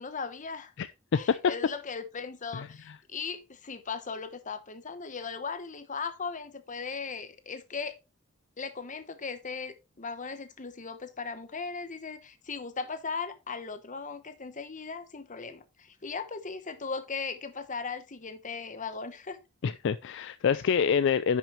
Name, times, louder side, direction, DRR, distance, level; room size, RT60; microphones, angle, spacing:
voice 1, 0.0-0.7 1.1-7.9 8.6-19.4, left 5 dB, 40° left, 1.0 m, -38 dB
voice 2, 0.8-1.4 2.5-2.7 19.6-21.4, left 6 dB, 60° left, 0.4 m, -26 dB
10.0 x 6.1 x 3.1 m
head